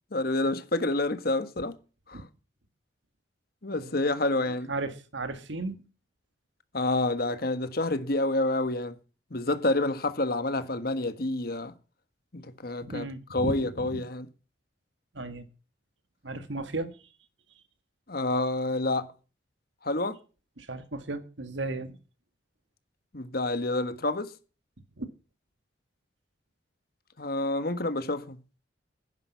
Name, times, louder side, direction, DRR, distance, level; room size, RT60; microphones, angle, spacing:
voice 1, 0.1-1.7 2.1-2.2 3.6-4.7 6.7-8.9 9.3-11.7 12.3-14.3 18.1-19.1 19.8-20.2 23.1-24.3 27.2-28.4, left 2 dB, 50° left, 1.5 m, -28 dB
voice 2, 4.7-5.8 12.8-14.0 15.1-15.5 16.2-17.0 20.6-22.0 25.0-25.1, right 2 dB, 70° right, 1.9 m, -35 dB
11.0 x 10.5 x 6.9 m
head